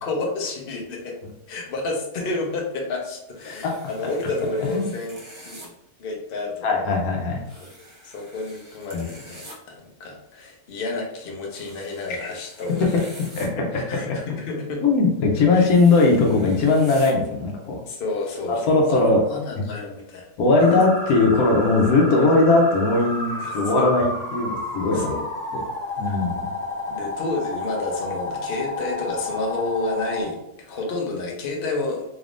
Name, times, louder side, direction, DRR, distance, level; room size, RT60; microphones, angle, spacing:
voice 1, 0.0-1.2 1.5-5.7 6.0-7.0 7.6-7.7 8.0-13.1 13.7-14.8 15.5-15.7 17.8-20.2 20.6-20.8 22.2-22.3 23.3-23.9 24.9-25.3 26.0-26.2 26.9-32.0, left 2 dB, 50° left, 0 dB, 0.8 m, -30 dB
sound 1, 3.3-5.7 7.4-9.6 11.5-13.5 15.5-17.1, right 1 dB, 30° right, 0.6 m, -45 dB
voice 2, 6.6-7.4 8.9-9.0 12.1-12.2 13.4-13.6 14.8-17.7 18.5-19.2 19.6-19.7 20.4-25.2 25.5-25.6 26.0-26.5, left 3 dB, 75° left, 0 dB, 1.3 m, -19 dB
sound 2, 20.6-30.2, left 2 dB, 5° left, 1.0 m, -31 dB
4.0 x 3.5 x 2.5 m, 0.82 s
omnidirectional pair, 1.6 m